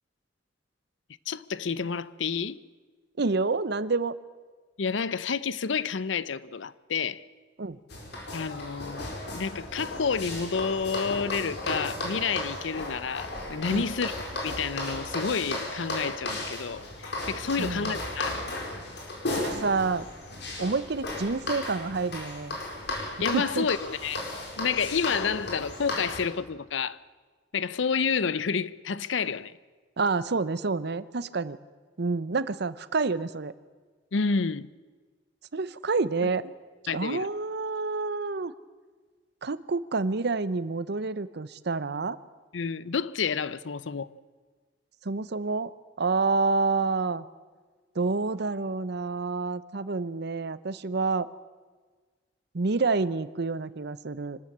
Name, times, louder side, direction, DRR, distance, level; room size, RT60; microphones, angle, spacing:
voice 1, 1.3-2.6 4.8-7.2 8.3-14.1 14.4-18.5 23.2-24.2 24.6-27.0 27.5-29.5 34.1-34.7 36.9-37.3 42.5-44.1, left 5 dB, 85° left, 0.6 m, -29 dB
voice 2, 3.2-4.2 7.6-7.8 13.7-13.9 17.6-18.0 19.3-20.0 20.6-22.6 23.3-23.7 30.0-31.6 32.0-33.5 35.5-36.5 36.9-38.5 39.4-42.2 45.0-45.7 46.0-47.3 47.9-51.3 52.5-54.4, right 3 dB, 65° right, 0.8 m, -28 dB
sound 1, 7.9-26.3, left 1 dB, 65° left, 4.7 m, -35 dB
25.5 x 13.0 x 8.6 m
head